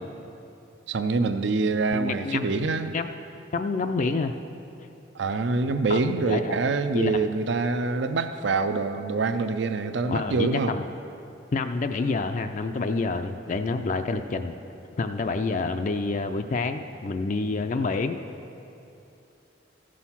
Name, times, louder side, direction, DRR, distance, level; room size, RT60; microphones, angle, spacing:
voice 1, 0.9-3.0 5.1-10.8 13.8-14.1, right 3 dB, 70° right, 9 dB, 0.5 m, -25 dB
voice 2, 1.9-2.7 2.9-3.1 3.5-4.3 5.9-6.5 6.9-7.3 10.1-10.8 11.5-14.6 15.0-18.2, left 3 dB, 40° left, 7 dB, 0.4 m, -28 dB
14.5 x 6.3 x 5.7 m, 2.7 s
head